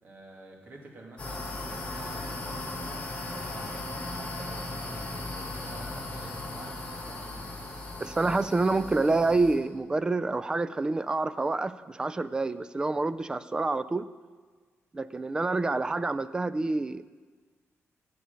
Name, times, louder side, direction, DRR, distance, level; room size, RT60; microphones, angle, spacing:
voice 1, 0.0-3.0 3.4-7.5, right 2 dB, 40° right, 0 dB, 2.1 m, -49 dB
sound 1, 1.2-9.6, left 2 dB, 25° left, 2.4 m, -37 dB
voice 2, 8.0-14.0 14.9-17.0, right 3 dB, 15° right, 14 dB, 0.3 m, -27 dB
19.0 x 6.9 x 5.1 m, 1.5 s
wide cardioid pair, 175°, 5 cm